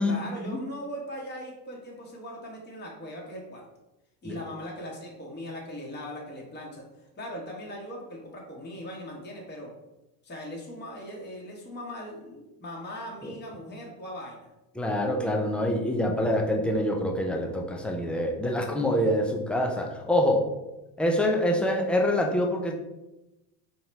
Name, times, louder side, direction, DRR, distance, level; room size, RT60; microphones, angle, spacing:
voice 1, 0.0-3.6 4.2-9.7 10.2-14.5, equal, 20° left, -2 dB, 1.2 m, -39 dB
voice 2, 14.8-20.5 21.0-22.7, left 1 dB, 5° left, 1 dB, 0.3 m, -25 dB
4.1 x 2.9 x 3.3 m, 0.96 s
hypercardioid pair, 80°, 48 cm